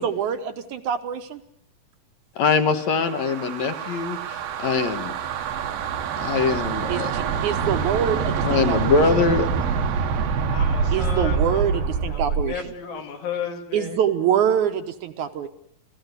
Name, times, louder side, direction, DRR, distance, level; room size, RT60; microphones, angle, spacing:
voice 1, 0.0-1.4 6.9-9.0 10.9-12.5 13.7-15.5, right 9 dB, 65° right, 7 dB, 2.3 m, -25 dB
voice 2, 2.4-5.1 6.2-7.1 8.4-9.5, left 5 dB, 60° left, 9 dB, 2.3 m, -22 dB
sound 1, 2.8-12.6, right 5 dB, 85° right, 3.3 m, -26 dB
voice 3, 10.5-14.0 14.5-14.6, left 7 dB, 85° left, 5 dB, 4.2 m, -34 dB
29.0 x 15.5 x 8.2 m, 0.68 s
omnidirectional pair, 4.1 m